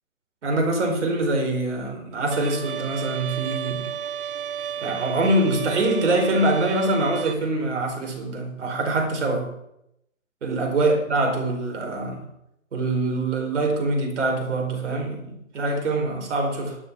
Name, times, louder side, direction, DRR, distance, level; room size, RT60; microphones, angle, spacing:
voice 1, 0.4-3.9 4.8-9.5 10.4-12.3 12.7-16.8, right 2 dB, 60° right, 4.6 m, -24 dB
Bowed string instrument, 2.3-7.3, right 8 dB, 40° right, 0.6 m, -33 dB
12.5 x 10.0 x 6.0 m
hypercardioid pair, 150°, 41 cm